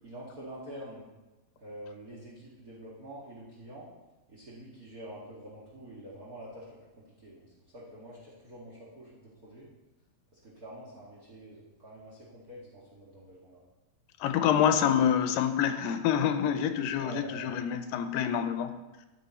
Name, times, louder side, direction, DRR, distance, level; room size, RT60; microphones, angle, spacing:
voice 1, 0.0-1.0 1.6-3.9 4.3-6.7 7.0-9.7 10.3-13.6 17.0-17.5, right 1 dB, 45° right, -5 dB, 1.2 m, -46 dB
voice 2, 14.2-18.7, left 9 dB, 90° left, 9 dB, 2.3 m, -27 dB
12.5 x 5.4 x 4.3 m, 1.1 s
omnidirectional pair, 4.0 m